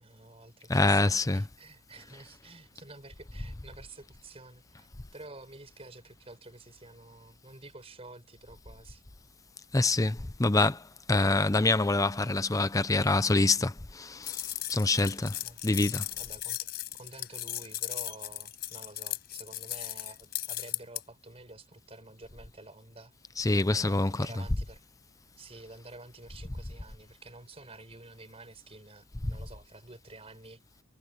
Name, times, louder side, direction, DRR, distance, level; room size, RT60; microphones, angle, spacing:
voice 1, 0.0-4.9 5.1-9.0 15.4-15.6 16.2-23.1 23.7-24.8 25.4-30.6, right 2 dB, 30° right, 5.0 m, -50 dB
voice 2, 0.7-1.4 9.7-10.8 11.1-14.4 14.7-15.3 15.6-16.1 23.4-24.1, left 2 dB, 15° left, 0.6 m, -25 dB
sound 1, 14.2-21.0, left 13 dB, 50° left, 5.5 m, -37 dB
head